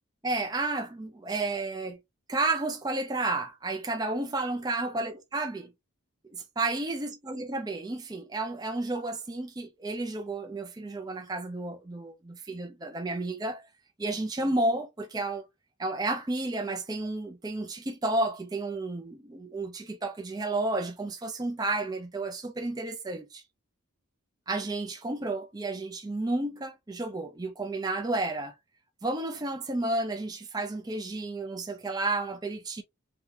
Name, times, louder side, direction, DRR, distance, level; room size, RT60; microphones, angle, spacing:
voice 1, 0.2-2.0 2.3-5.7 6.2-13.6 14.0-15.5 15.8-23.4 24.5-28.6 29.0-32.8, right 2 dB, 20° right, 0.4 m, -32 dB
3.5 x 2.2 x 2.7 m
head